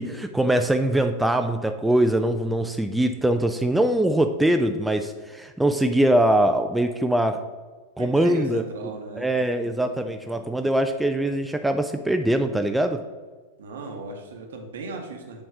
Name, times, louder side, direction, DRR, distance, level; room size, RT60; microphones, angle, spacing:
voice 1, 0.0-7.4 8.0-8.6 9.2-13.0, right 1 dB, 5° right, 6 dB, 0.3 m, -22 dB
voice 2, 8.0-9.3 9.6-10.1 13.6-15.4, right 3 dB, 60° right, 4 dB, 0.9 m, -37 dB
6.7 x 3.2 x 4.7 m, 1.3 s
figure-of-eight pair, 90°, 0 cm